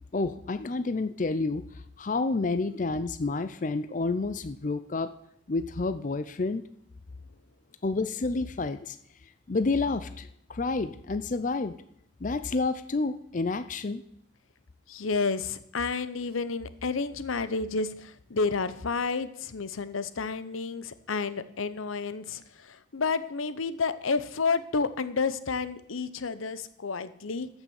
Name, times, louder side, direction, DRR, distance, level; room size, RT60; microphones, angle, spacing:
voice 1, 0.1-1.6 2.0-5.1 5.5-6.6 7.8-9.0 9.5-11.7 12.2-14.0, left 3 dB, 40° left, 12 dB, 0.5 m, -29 dB
voice 2, 14.9-27.5, left 4 dB, 90° left, 14 dB, 0.8 m, -30 dB
14.0 x 6.1 x 7.1 m, 0.70 s
head